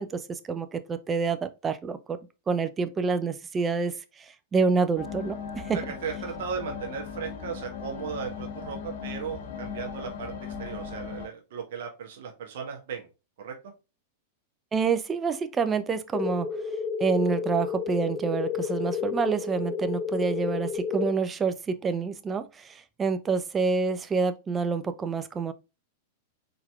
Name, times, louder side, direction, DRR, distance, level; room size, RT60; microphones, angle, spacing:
voice 1, 0.0-2.2 2.5-5.8 14.7-16.5 17.0-25.5, right 5 dB, 20° right, 0.6 m, -27 dB
sound 1, 5.0-11.3, left 6 dB, 65° left, 0.9 m, -38 dB
voice 2, 5.7-10.3 10.6-13.1 13.4-13.6, right 6 dB, 65° right, 1.2 m, -36 dB
sound 2, 16.1-21.1, left 6 dB, 25° left, 0.5 m, -31 dB
4.3 x 3.9 x 2.3 m
hypercardioid pair, 100°, 0 cm